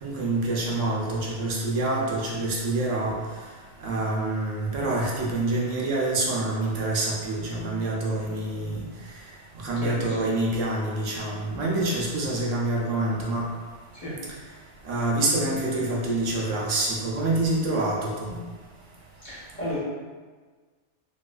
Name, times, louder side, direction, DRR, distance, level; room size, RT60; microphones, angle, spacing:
voice 1, 0.0-3.2 3.8-8.8 9.6-13.4 14.9-18.3, right 2 dB, 80° right, -3 dB, 1.0 m, -26 dB
voice 2, 9.8-10.1 13.9-14.1 19.2-19.8, left 1 dB, 40° left, -10 dB, 1.2 m, -34 dB
3.9 x 2.3 x 2.3 m, 1.4 s
omnidirectional pair, 1.2 m